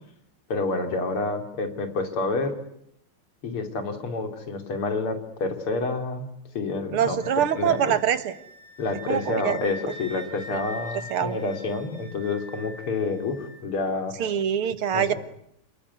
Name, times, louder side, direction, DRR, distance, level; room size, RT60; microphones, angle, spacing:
voice 1, 0.5-2.5 3.4-6.3 6.5-7.9 8.8-14.1 14.9-15.1, left 3 dB, 90° left, 6 dB, 3.9 m, -28 dB
voice 2, 6.9-8.3 9.1-9.6 10.5-10.7 11.1-11.4 14.2-15.1, right 9 dB, 85° right, 12 dB, 2.4 m, -24 dB
Wind instrument woodwind instrument, 7.2-13.6, equal, 50° left, 8.7 m, -43 dB
29.0 x 19.5 x 9.8 m, 0.76 s
omnidirectional pair, 2.3 m